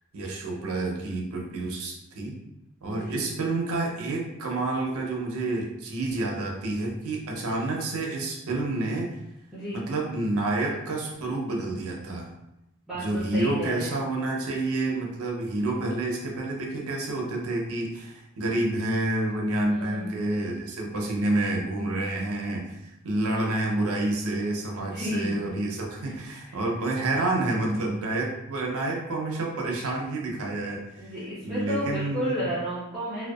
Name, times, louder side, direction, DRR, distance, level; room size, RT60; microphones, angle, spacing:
voice 1, 0.1-2.4 2.8-9.2 9.7-12.3 12.9-31.1 31.4-32.5, right 2 dB, 70° right, -1 dB, 0.6 m, -29 dB
voice 2, 2.9-3.3 9.5-9.8 12.9-14.0 19.7-20.1 24.8-25.4 26.5-26.6 31.0-33.3, equal, ahead, -11 dB, 0.6 m, -32 dB
2.6 x 2.2 x 2.3 m, 0.89 s
head